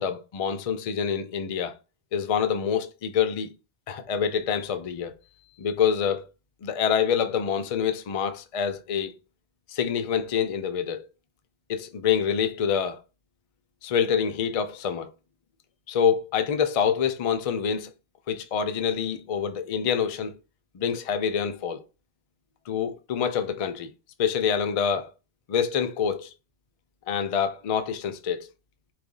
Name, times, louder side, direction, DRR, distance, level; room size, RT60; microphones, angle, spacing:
voice 1, 0.0-1.7 2.1-3.5 3.9-5.1 5.6-6.2 6.6-9.1 9.7-11.1 11.7-13.0 13.8-15.1 15.9-17.9 18.3-20.3 20.7-21.8 22.7-23.9 24.2-25.1 25.5-26.3 27.1-28.5, left 7 dB, 60° left, 0.3 m, -26 dB
4.7 x 2.5 x 3.7 m
omnidirectional pair, 1.2 m